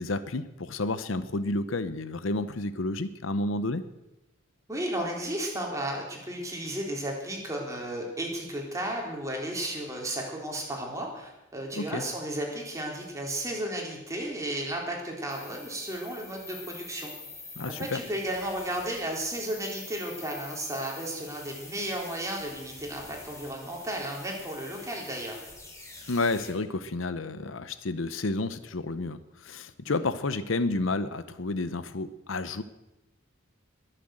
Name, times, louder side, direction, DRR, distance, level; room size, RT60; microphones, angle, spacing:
voice 1, 0.0-3.8 11.8-12.0 17.6-18.0 26.1-32.6, left 2 dB, 70° left, 13 dB, 0.8 m, -30 dB
voice 2, 4.7-17.1 17.8-25.4 29.9-30.0, right 1 dB, 15° right, -1 dB, 3.8 m, -34 dB
sound 1, 15.3-26.5, left 3 dB, 15° left, 3.7 m, -46 dB
21.5 x 7.7 x 7.8 m, 0.99 s
head